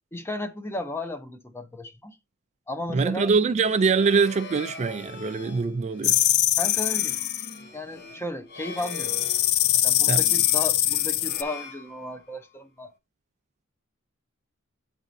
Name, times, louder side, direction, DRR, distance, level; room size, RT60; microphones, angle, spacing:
voice 1, 0.1-2.2 2.7-3.3 6.6-7.2 7.7-9.1 9.7-12.9, left 1 dB, 10° left, 0.6 m, -34 dB
voice 2, 2.9-6.2 10.1-10.2, right 5 dB, 35° right, 0.3 m, -23 dB
sound 1, 3.5-12.5, left 3 dB, 50° left, 0.7 m, -43 dB
sound 2, 6.0-7.5 8.8-11.4, left 13 dB, 85° left, 0.4 m, -23 dB
9.1 x 4.1 x 2.5 m
head